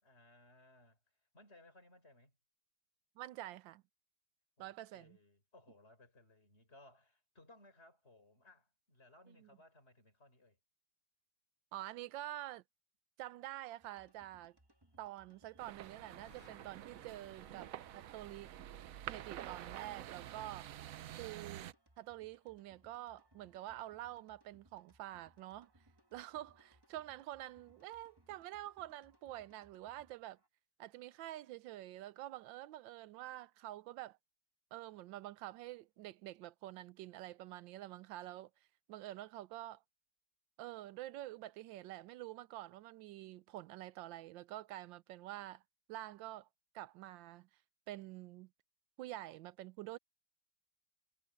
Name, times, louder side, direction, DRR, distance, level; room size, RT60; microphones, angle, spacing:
voice 1, 0.0-1.0 1.3-2.4 4.6-10.6, left 2 dB, 35° left, 4.9 m, -63 dB
voice 2, 3.2-3.8 4.6-5.2 9.3-9.5 11.7-12.6 13.2-14.6 15.0-18.5 19.1-20.7 21.2-21.7 22.0-25.7 26.1-30.4 30.8-34.2 34.7-38.5 38.9-39.8 40.6-45.6 45.9-46.5 46.7-47.5 47.9-48.5 49.0-50.0, right 14 dB, 85° right, 1.3 m, -47 dB
sound 1, 13.8-30.5, right 1 dB, 15° right, 1.4 m, -69 dB
sound 2, 15.6-21.7, right 12 dB, 65° right, 0.9 m, -49 dB
sound 3, 15.8-18.7, left 4 dB, 70° left, 2.9 m, -67 dB
omnidirectional pair, 2.0 m